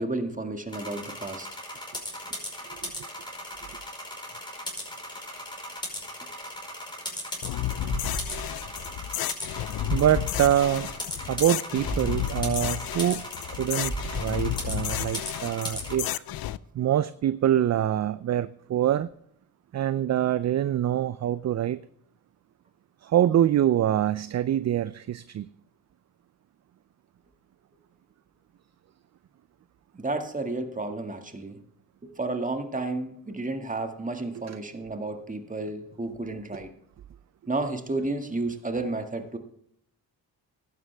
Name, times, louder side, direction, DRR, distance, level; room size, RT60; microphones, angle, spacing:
voice 1, 0.0-1.5 29.9-31.6 32.0-36.7 37.5-39.4, right 2 dB, 20° right, 6 dB, 2.0 m, -32 dB
sound 1, 0.7-15.9, left 1 dB, 10° left, 5.1 m, -38 dB
sound 2, 7.4-16.6, left 13 dB, 65° left, 0.6 m, -32 dB
sound 3, 7.8-9.2 9.4-9.5 9.8-11.2 11.4-11.5 11.8-13.5 13.8-15.2 15.4-15.5, right 2 dB, 80° right, 5.6 m, -37 dB
voice 2, 9.9-10.9 11.3-13.2 13.5-16.2 16.7-19.1 19.7-21.8 23.0-25.5 34.5-34.6, right 11 dB, 45° right, 16 dB, 0.5 m, -25 dB
15.0 x 11.0 x 3.4 m, 0.69 s
cardioid pair, 75°, 39 cm